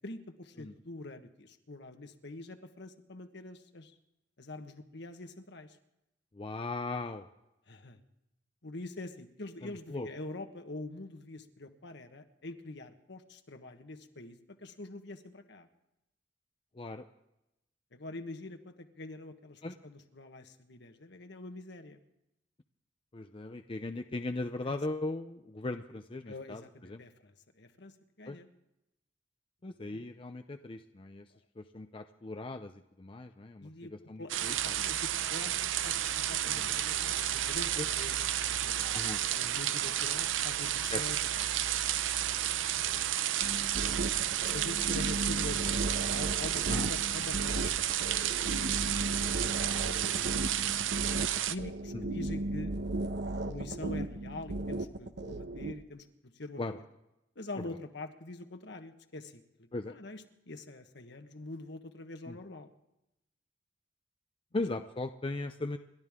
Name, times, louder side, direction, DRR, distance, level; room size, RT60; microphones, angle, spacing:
voice 1, 0.0-4.0 4.4-5.8 7.7-8.0 8.6-15.7 17.9-22.0 24.6-24.7 26.3-28.5 29.9-30.0 33.6-35.5 35.8-41.4 42.9-43.1 44.4-45.8 46.1-48.3 49.8-50.5 51.5-52.7 53.2-56.1 56.3-56.8 57.3-62.7, left 2 dB, 65° left, 7 dB, 1.4 m, -45 dB
voice 2, 6.3-7.3 9.6-10.1 16.8-17.0 19.6-19.7 23.1-27.0 28.3-28.4 29.6-31.3 31.6-32.7 33.0-34.8 36.4-36.7 37.7-37.9 38.9-39.2 40.9-41.0 46.7-46.9 51.9-52.0 56.6-56.8 59.7-59.9 62.3-62.4 64.5-65.8, left 2 dB, 30° left, 7 dB, 0.5 m, -38 dB
sound 1, 34.3-51.5, right 11 dB, 80° right, 0.6 m, -32 dB
sound 2, 43.4-55.7, right 2 dB, 60° right, 1.0 m, -35 dB
28.5 x 12.5 x 3.7 m, 0.90 s
head